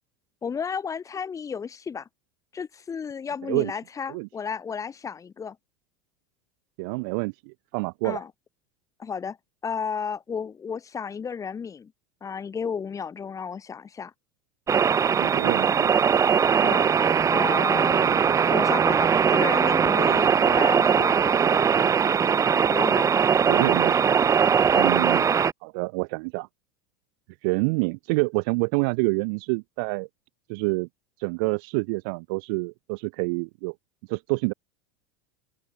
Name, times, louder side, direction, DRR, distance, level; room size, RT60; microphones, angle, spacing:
voice 1, 0.4-2.1 2.5-5.6 8.0-8.3 9.0-9.4 9.6-11.9 12.2-14.1 16.6-16.9 17.3-18.2 18.5-21.6 22.7-23.1 24.7-24.9, left 6 dB, 25° left, 6.8 m, -33 dB
voice 2, 6.8-8.2 15.2-16.0 23.5-24.0 24.8-25.2 25.6-26.5 27.4-30.1 30.5-30.9 31.2-33.7 34.1-34.5, right 31 dB, 65° right, 1.5 m, -27 dB
sound 1, 14.7-25.5, right 7 dB, 25° right, 1.3 m, -20 dB
open air
hypercardioid pair, 85°, 12 cm